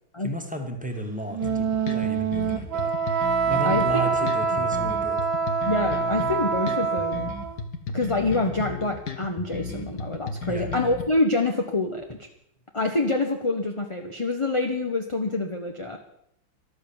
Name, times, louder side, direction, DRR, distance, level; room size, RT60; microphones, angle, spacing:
voice 1, 0.2-1.4 1.9-2.9 3.4-5.2 10.5-10.7, right 1 dB, 5° right, 4 dB, 1.8 m, -33 dB
Wind instrument woodwind instrument, 1.3-7.5, right 6 dB, 75° right, 2.0 m, -25 dB
sound 1, 1.4-11.0, left 5 dB, 55° left, 2.1 m, -34 dB
voice 2, 3.6-4.7 5.7-7.3 7.9-12.3 12.7-16.0, left 2 dB, 20° left, 3 dB, 1.0 m, -26 dB
14.0 x 12.5 x 7.1 m, 0.73 s
omnidirectional pair, 2.2 m